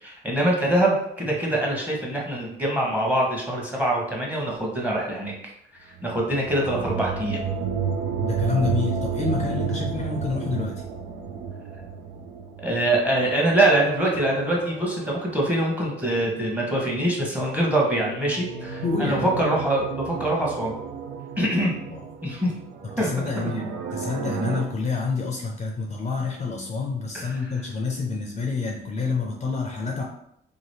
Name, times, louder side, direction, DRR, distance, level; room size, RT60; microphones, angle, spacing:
voice 1, 0.0-5.3 6.0-7.4 12.6-20.7 21.4-21.7 22.2-22.5 23.0-23.1 27.1-27.4, right 1 dB, 5° right, -3 dB, 1.0 m, -24 dB
sound 1, 6.0-16.7 17.8-24.6, right 6 dB, 80° right, 0.5 m, -32 dB
voice 2, 8.2-10.8 18.8-19.3 21.9-22.1 23.0-30.0, left 4 dB, 35° left, 0 dB, 0.5 m, -28 dB
2.9 x 2.4 x 3.1 m, 0.74 s
cardioid pair, 90°, 20 cm